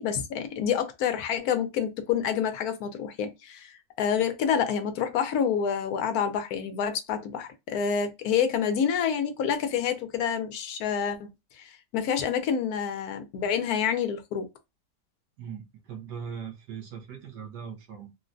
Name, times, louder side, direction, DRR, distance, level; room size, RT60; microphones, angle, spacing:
voice 1, 0.0-11.3 11.6-14.5, left 7 dB, 70° left, 1.1 m, -28 dB
voice 2, 15.4-18.1, right 7 dB, 85° right, 1.3 m, -40 dB
3.7 x 2.1 x 2.5 m
omnidirectional pair, 1.8 m